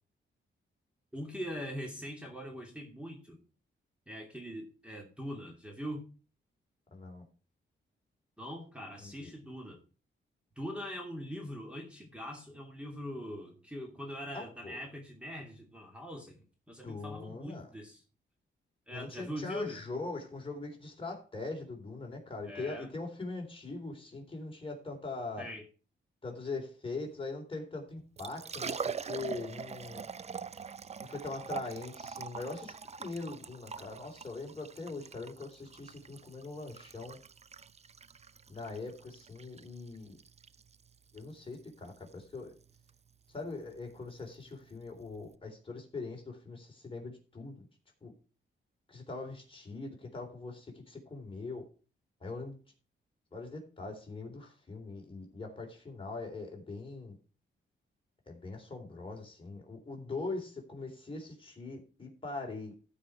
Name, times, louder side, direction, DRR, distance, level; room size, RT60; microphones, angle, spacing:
voice 1, 1.1-3.4 4.1-6.0 8.4-9.8 10.6-16.4 16.7-18.0 18.9-19.8 22.4-22.9 25.4-25.7, equal, 5° right, 2.6 m, -42 dB
voice 2, 6.9-7.2 9.0-9.3 14.3-14.8 16.8-17.7 18.9-25.5 26.2-30.1 31.0-37.2 38.5-40.2 41.1-42.5 43.3-47.6 48.0-48.1 48.9-51.6 52.2-52.6 53.3-57.2 58.3-62.8, left 3 dB, 25° left, 3.7 m, -42 dB
Liquid, 28.0-45.3, right 6 dB, 35° right, 0.5 m, -44 dB
14.5 x 5.3 x 4.8 m
cardioid pair, 95°, 20 cm